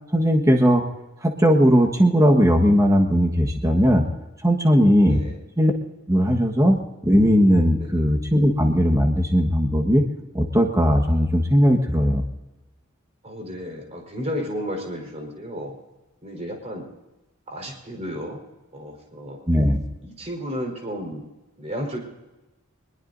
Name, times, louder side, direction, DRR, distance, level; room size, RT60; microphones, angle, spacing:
voice 1, 0.1-0.8 1.2-4.1 4.4-5.2 5.6-5.7 6.1-6.8 7.0-10.0 10.3-12.2 19.5-19.8, equal, 15° right, 1 dB, 1.5 m, -18 dB
voice 2, 5.0-5.4 6.1-6.3 7.8-8.0 13.2-15.8 16.2-16.9 17.5-18.4 18.7-19.4 20.0-21.2 21.6-22.0, equal, 30° right, 1 dB, 4.5 m, -33 dB
22.5 x 21.5 x 2.7 m, 1.1 s
head